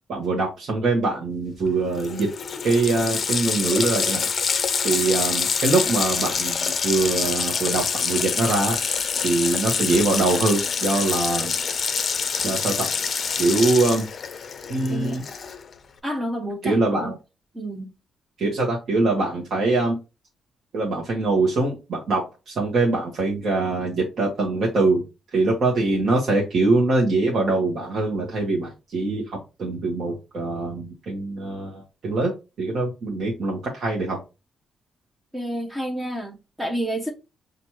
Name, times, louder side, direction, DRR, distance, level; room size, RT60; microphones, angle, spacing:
voice 1, 0.1-2.3 2.6-4.3 4.8-8.8 9.2-11.5 12.4-12.9 13.4-14.0 14.7-15.2 16.6-17.2 18.4-20.0 20.7-25.0 25.3-32.3 32.6-34.2, right 3 dB, 60° right, 1.1 m, -23 dB
Water tap faucet, 1.7-1.8 2.0-15.7, left 6 dB, 45° left, 0.5 m, -26 dB
voice 2, 14.9-15.3 16.0-17.1 17.5-17.9 35.3-37.1, equal, 10° right, 0.6 m, -29 dB
6.0 x 2.5 x 2.9 m
cardioid pair, 140°, 0 cm